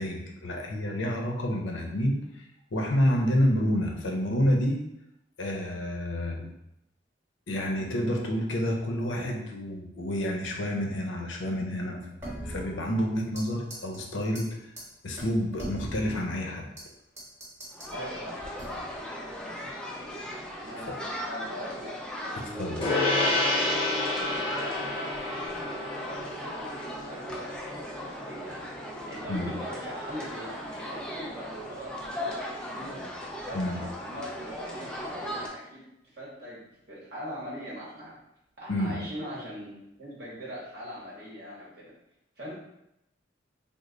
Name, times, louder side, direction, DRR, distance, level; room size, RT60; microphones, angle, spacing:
voice 1, 0.0-2.4 2.7-4.8 5.4-6.5 7.5-12.0 12.4-14.6 15.0-16.7 22.6-22.9 29.3-29.5 33.5-33.8 38.7-38.9, equal, 85° left, 1 dB, 0.6 m, -28 dB
sound 1, 12.2-13.4 13.7-14.0 14.3-14.4 14.8-14.9 15.2-16.9 17.2-17.9 18.6-19.0, equal, 15° right, 0.9 m, -40 dB
sound 2, 17.7-35.5, equal, 5° left, 0.4 m, -38 dB
voice 2, 17.9-18.4 20.6-21.0 21.3-23.4 24.3-25.3 25.6-33.0 33.4-35.8 36.1-38.1 38.6-41.9 42.4-42.6, equal, 60° right, -6 dB, 0.9 m, -41 dB
Gong, 22.8-32.5, left 2 dB, 30° left, 0.9 m, -32 dB
3.1 x 2.0 x 3.7 m, 0.83 s
head